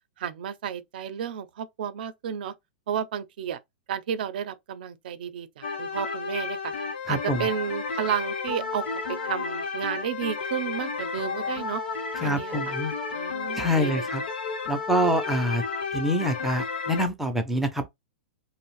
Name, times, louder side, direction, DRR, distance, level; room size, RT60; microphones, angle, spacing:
voice 1, 0.2-2.5 2.9-3.6 3.9-6.7 7.1-11.8 12.2-12.7 13.1-14.1, right 9 dB, 65° right, 0.5 m, -32 dB
sound 1, 5.6-17.1, left 5 dB, 85° left, 0.8 m, -32 dB
voice 2, 7.1-7.5 12.2-12.9 13.6-14.2 14.7-15.6 15.9-17.9, equal, 5° right, 0.4 m, -26 dB
2.5 x 2.0 x 3.0 m
hypercardioid pair, 145°, 5 cm